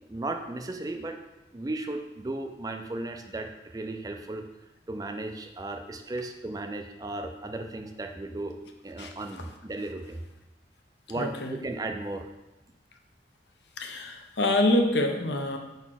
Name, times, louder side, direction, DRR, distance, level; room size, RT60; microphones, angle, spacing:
voice 1, 0.1-1.2 1.5-4.4 4.9-8.6 8.8-10.2 11.1-12.3, right 2 dB, 20° right, 5 dB, 0.4 m, -35 dB
voice 2, 9.0-9.5 11.1-11.6 13.8-15.6, left 1 dB, 75° left, 3 dB, 0.8 m, -26 dB
4.9 x 4.1 x 5.8 m, 1.0 s
head